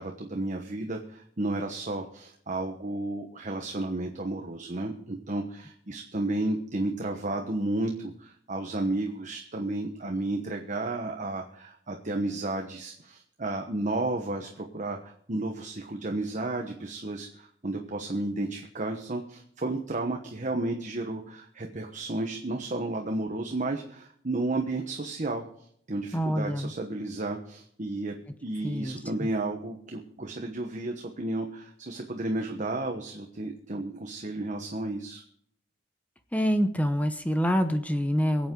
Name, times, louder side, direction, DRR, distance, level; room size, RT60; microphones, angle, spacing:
voice 1, 0.0-28.2 28.4-35.2, right 2 dB, 45° right, 3 dB, 1.2 m, -32 dB
voice 2, 26.1-26.7 28.6-29.3 36.3-38.5, equal, 10° left, 8 dB, 0.9 m, -26 dB
23.5 x 8.3 x 3.8 m, 0.67 s
head